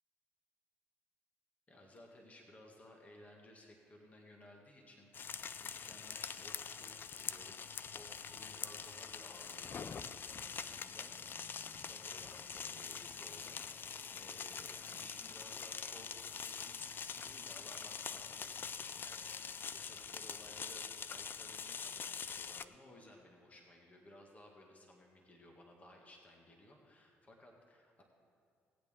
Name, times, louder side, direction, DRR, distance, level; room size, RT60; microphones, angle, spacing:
voice 1, 1.7-7.0 7.3-7.6 7.9-28.0, left 1 dB, 30° left, 1 dB, 1.8 m, -59 dB
sound 1, 5.1-22.6, left 6 dB, 45° left, 0.4 m, -44 dB
17.5 x 8.5 x 3.7 m, 2.4 s
supercardioid pair, 65°, 5 cm